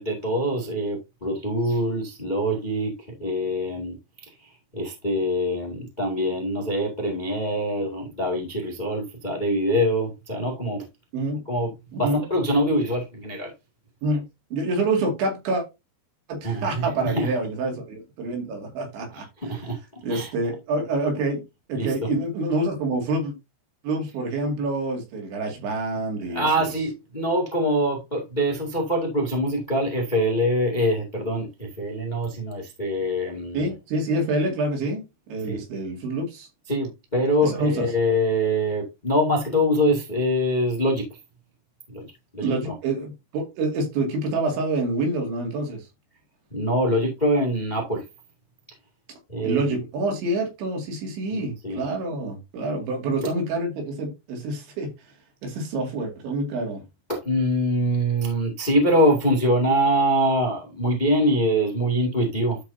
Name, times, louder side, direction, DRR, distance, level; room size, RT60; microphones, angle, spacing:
voice 1, 0.0-2.9 3.2-4.0 4.7-10.8 11.5-11.7 12.0-13.5 16.4-17.3 19.1-19.8 20.1-20.3 21.7-21.9 26.3-33.6 35.5-35.6 36.7-41.0 41.9-42.1 42.3-42.7 46.5-48.0 49.3-49.7 51.3-51.8 57.1-62.6, equal, 35° left, 0.7 m, -24 dB
voice 2, 11.9-12.2 14.0-14.2 14.5-15.6 16.3-19.3 20.0-21.4 21.7-23.3 23.8-26.7 33.5-35.0 35.3-36.5 37.4-37.9 42.4-45.9 49.4-54.9 55.4-56.8, right 2 dB, 85° right, 4.8 m, -27 dB
12.5 x 4.8 x 2.8 m
omnidirectional pair, 5.2 m